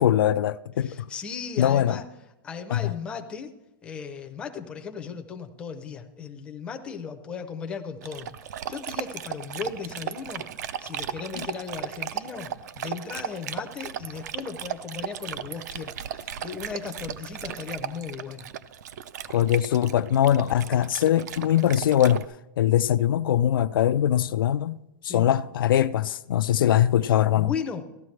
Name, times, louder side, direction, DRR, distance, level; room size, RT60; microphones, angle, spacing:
voice 1, 0.0-1.1 1.6-2.0 2.7-2.8 11.4-11.5 19.3-22.2 22.6-24.8 25.0-27.5, left 11 dB, 80° left, 0.4 m, -22 dB
voice 2, 0.8-2.1 2.4-3.5 3.8-18.5 25.0-25.3 27.3-27.8, left 6 dB, 10° left, 0.5 m, -36 dB
Dog, 8.0-22.2, right 9 dB, 50° right, 0.5 m, -36 dB
15.5 x 12.0 x 3.2 m
supercardioid pair, 175°, 11 cm